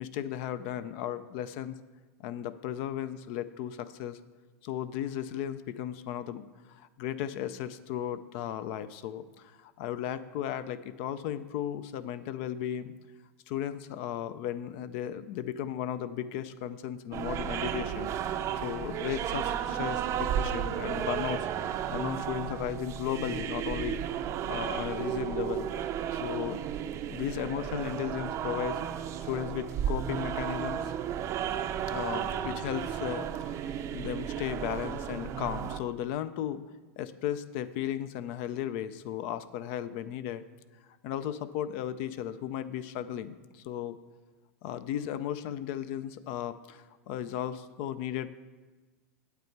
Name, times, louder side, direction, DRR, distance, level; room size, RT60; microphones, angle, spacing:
voice 1, 0.0-1.8 2.2-4.2 4.6-12.9 13.5-24.0 24.5-26.6 27.1-28.8 29.2-30.9 31.9-36.6 37.0-40.4 41.0-44.0 44.6-48.3, left 11 dB, 55° left, 14 dB, 0.5 m, -35 dB
sound 1, 17.1-35.8, right 9 dB, 35° right, 0.5 m, -33 dB
8.3 x 8.0 x 4.6 m, 1.3 s
hypercardioid pair, 110°, 8 cm